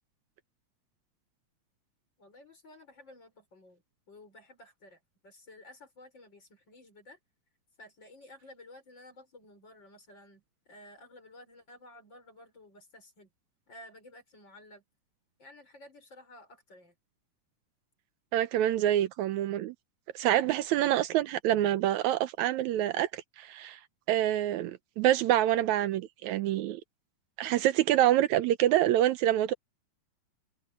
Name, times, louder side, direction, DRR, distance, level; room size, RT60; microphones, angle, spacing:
voice 1, 2.2-3.8 4.1-7.2 7.8-13.3 13.7-14.8 15.4-16.9, left 1 dB, 35° left, 6.4 m, -53 dB
voice 2, 18.3-19.8 20.2-23.8 24.1-26.8 27.4-29.5, right 12 dB, 80° right, 2.0 m, -26 dB
omnidirectional pair, 3.5 m